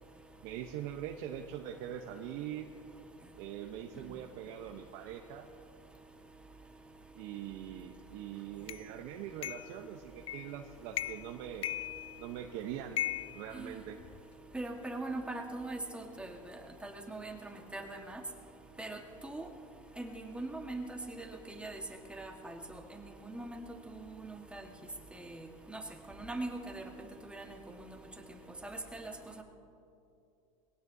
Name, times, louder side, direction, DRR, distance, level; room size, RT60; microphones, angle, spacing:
voice 1, 0.4-2.7 3.4-5.5 7.1-11.8 12.2-13.0 13.3-14.0, right 10 dB, 60° right, 3 dB, 0.9 m, -42 dB
sound 1, 8.7-8.8 9.4-9.8 10.3-10.6 10.9-11.3 11.6-12.4 13.0-14.2, left 13 dB, 35° left, 0.4 m, -38 dB
voice 2, 14.5-16.3 16.8-18.2 18.8-19.5 20.0-21.8 22.1-24.7 25.1-25.8 26.1-26.8 27.2-28.1 28.6-29.1 29.4-29.5, right 2 dB, 5° right, 2 dB, 1.5 m, -42 dB
22.5 x 17.5 x 2.8 m, 2.7 s
supercardioid pair, 115°, 17 cm